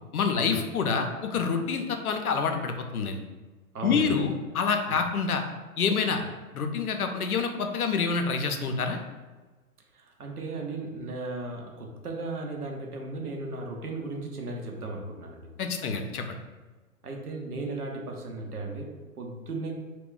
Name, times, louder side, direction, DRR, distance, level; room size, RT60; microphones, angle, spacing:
voice 1, 0.1-3.2 3.8-5.4 5.8-6.2 6.5-9.0 15.6-16.4, left 5 dB, 75° left, 5 dB, 0.5 m, -27 dB
voice 2, 3.7-4.1 4.9-5.0 9.9-15.5 17.0-19.7, right 2 dB, 85° right, 1 dB, 0.7 m, -36 dB
2.2 x 2.2 x 3.6 m, 1.3 s
figure-of-eight pair, 120°, 44 cm